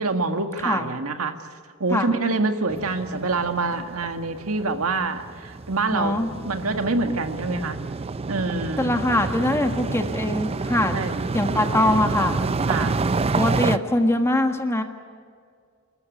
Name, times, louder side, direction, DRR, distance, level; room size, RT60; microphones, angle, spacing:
voice 1, 0.0-1.4 1.8-6.2 6.4-7.8 8.3-8.9 10.9-11.2 12.7-13.0, right 3 dB, 90° right, 6 dB, 1.8 m, -26 dB
sound 1, 2.7-13.8, right 3 dB, 30° right, 0.5 m, -28 dB
voice 2, 5.9-6.3 8.8-11.0 11.3-12.4 13.3-14.8, left 1 dB, 15° left, 5 dB, 1.6 m, -22 dB
27.0 x 14.0 x 9.3 m, 2.1 s
head